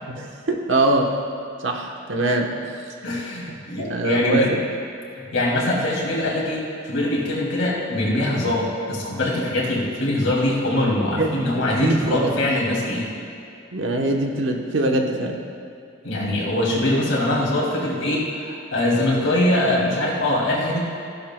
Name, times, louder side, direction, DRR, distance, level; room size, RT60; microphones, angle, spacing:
voice 1, 0.1-1.2 1.6-2.6 3.8-4.6 11.2-12.3 13.7-15.4, right 2 dB, 70° right, 2 dB, 1.1 m, -23 dB
voice 2, 3.0-4.5 5.2-13.1 16.0-20.8, left 1 dB, 80° left, -4 dB, 2.6 m, -22 dB
15.0 x 11.5 x 2.3 m, 2.6 s
head